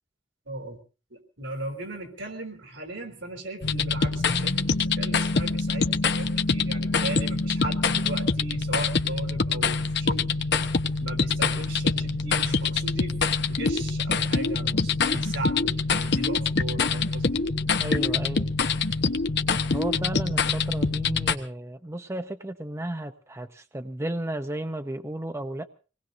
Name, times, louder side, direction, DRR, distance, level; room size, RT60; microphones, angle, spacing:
voice 1, 0.5-0.8 1.1-10.3 11.0-13.2 13.5-17.5, right 2 dB, 80° right, 3.7 m, -37 dB
sound 1, 3.6-21.4, left 4 dB, 65° left, 1.1 m, -25 dB
voice 2, 17.8-18.5 19.7-25.7, right 1 dB, 15° right, 0.7 m, -33 dB
26.0 x 19.0 x 2.7 m
head